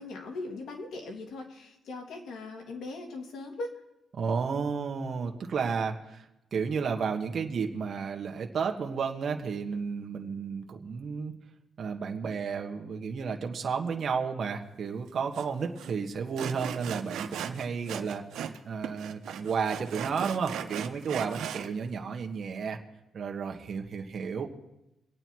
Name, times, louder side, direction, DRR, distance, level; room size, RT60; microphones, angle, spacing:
voice 1, 0.0-3.7, left 2 dB, 70° left, 2 dB, 2.8 m, -39 dB
voice 2, 4.1-6.2 6.5-11.3 11.8-22.8 23.1-24.5, right 5 dB, 40° right, 2 dB, 1.5 m, -32 dB
Sawing, 15.3-15.4 15.8-15.9 16.4-18.6 18.8-21.7, right 9 dB, 80° right, 1.1 m, -38 dB
25.0 x 9.0 x 4.7 m, 0.90 s
cardioid pair, 145°, 0 cm